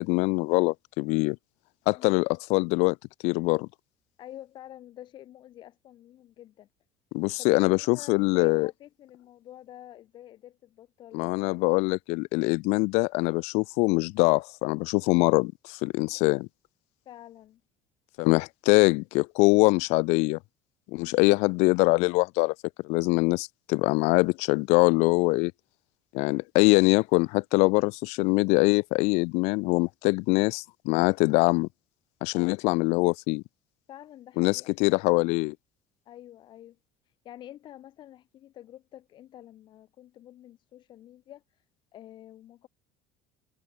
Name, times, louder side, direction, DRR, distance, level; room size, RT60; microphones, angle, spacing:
voice 1, 0.0-1.4 1.9-3.0 3.2-3.7 7.1-8.7 11.1-16.5 18.2-20.4 20.9-22.5 22.8-25.5 26.1-31.7 32.2-33.4 34.4-35.5, left 27 dB, 75° left, 1.4 m, -23 dB
voice 2, 4.2-6.7 7.4-11.7 17.0-17.6 20.9-21.2 32.3-32.6 33.9-34.8 36.0-36.8 37.2-41.4 41.9-42.7, left 12 dB, 45° left, 5.1 m, -48 dB
cardioid pair, 155°, 11 cm